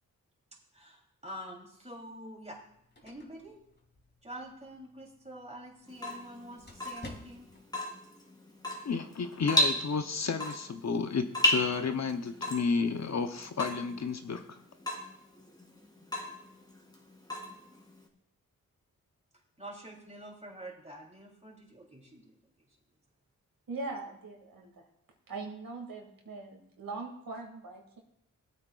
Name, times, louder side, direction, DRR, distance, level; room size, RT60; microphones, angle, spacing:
voice 1, 0.7-2.6 3.0-3.6 4.2-7.5 19.6-22.7, equal, 20° right, -1 dB, 3.4 m, -47 dB
sound 1, 2.5-7.7, left 2 dB, 30° left, 2.6 m, -53 dB
Water tap faucet / Drip, 5.9-18.1, left 1 dB, 10° left, 2.2 m, -34 dB
voice 2, 8.8-14.6, left 5 dB, 55° left, 7 dB, 0.9 m, -32 dB
voice 3, 23.7-24.8 25.3-28.0, right 3 dB, 85° right, 1 dB, 2.4 m, -41 dB
18.0 x 8.6 x 2.5 m, 0.73 s
cardioid pair, 70°, 34 cm